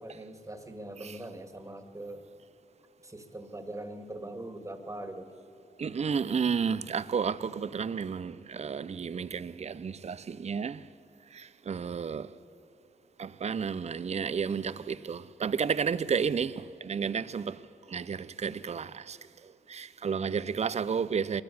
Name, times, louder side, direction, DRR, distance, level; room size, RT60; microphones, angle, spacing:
voice 1, 0.0-2.2 3.0-5.3, right 1 dB, 20° right, 2.0 m, -42 dB
voice 2, 5.8-10.9 11.3-12.4 13.2-21.4, right 6 dB, 40° right, 0.6 m, -32 dB
21.5 x 14.0 x 8.6 m
cardioid pair, 55°, 17 cm